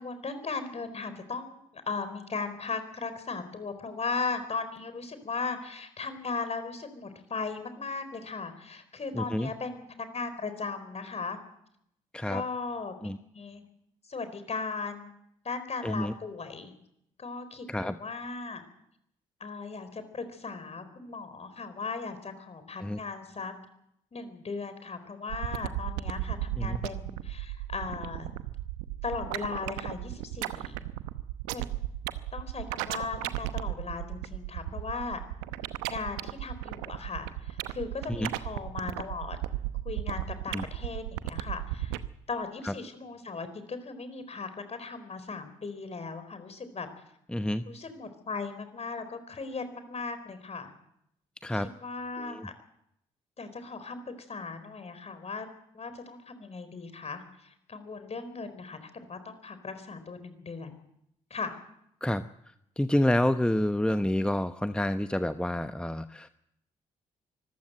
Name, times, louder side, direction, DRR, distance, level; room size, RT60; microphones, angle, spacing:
voice 1, 0.0-11.4 12.3-13.6 14.1-15.1 15.4-16.7 17.2-18.6 19.4-23.5 24.1-28.3 29.0-30.9 31.5-31.7 32.3-35.2 35.9-39.4 39.8-42.0 42.3-46.9 47.7-50.7 51.5-52.5 53.4-55.5 55.7-60.7 61.3-61.6, left 4 dB, 40° left, 10 dB, 4.4 m, -37 dB
voice 2, 9.1-9.5 12.1-12.4 13.0-13.2 15.8-16.1 17.7-18.0 22.8-23.0 26.6-26.8 38.1-38.3 40.5-40.7 42.6-42.7 47.3-47.6 51.4-51.7 52.2-52.5 62.0-66.3, left 1 dB, 5° left, 10 dB, 1.0 m, -29 dB
sound 1, 25.3-42.1, right 16 dB, 75° right, 0.9 m, -35 dB
24.5 x 15.0 x 7.8 m, 0.78 s
hypercardioid pair, 40°, 17 cm